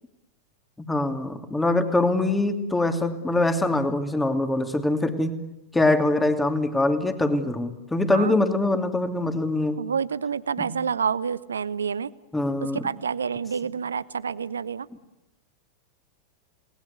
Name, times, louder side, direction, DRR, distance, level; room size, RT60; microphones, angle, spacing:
voice 1, 0.8-5.4 5.7-9.8 10.6-10.7 12.3-12.8, left 2 dB, 10° left, 7 dB, 2.8 m, -23 dB
voice 2, 9.8-12.1 12.6-14.9, right 6 dB, 70° right, 19 dB, 0.9 m, -28 dB
30.0 x 20.0 x 8.3 m, 0.98 s
figure-of-eight pair, 90°, 0 cm